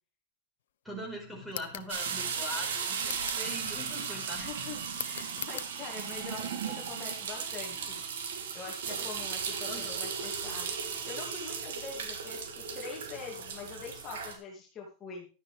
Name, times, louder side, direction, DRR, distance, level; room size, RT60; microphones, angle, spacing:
voice 1, 0.8-4.5 9.7-10.0, left 1 dB, ahead, 0 dB, 4.8 m, -41 dB
sound 1, 1.5-1.9 3.0-3.5 4.9-5.7, left 11 dB, 90° left, 0.8 m, -40 dB
sound 2, 1.9-14.4, right 6 dB, 85° right, 3.0 m, -36 dB
voice 2, 4.3-8.0 8.5-10.7 11.0-15.3, left 5 dB, 25° left, -2 dB, 2.5 m, -44 dB
12.0 x 10.0 x 3.4 m, 0.35 s
supercardioid pair, 150°, 0 cm